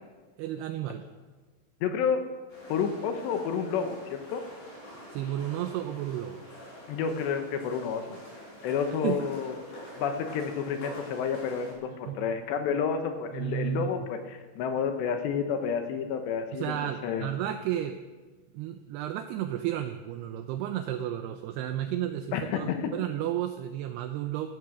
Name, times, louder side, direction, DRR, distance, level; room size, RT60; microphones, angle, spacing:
voice 1, 0.4-1.1 5.1-6.4 9.0-9.2 12.1-12.3 13.3-14.1 16.5-18.0 18.5-24.5, right 11 dB, 80° right, 7 dB, 2.5 m, -32 dB
voice 2, 1.8-2.3 2.7-4.4 6.9-8.2 8.6-9.6 10.0-16.8 17.0-17.3 22.3-22.9, left 6 dB, 75° left, 6 dB, 3.2 m, -30 dB
sound 1, 2.5-11.7, equal, 50° left, 8.6 m, -46 dB
14.5 x 14.5 x 6.3 m, 1.3 s
omnidirectional pair, 5.3 m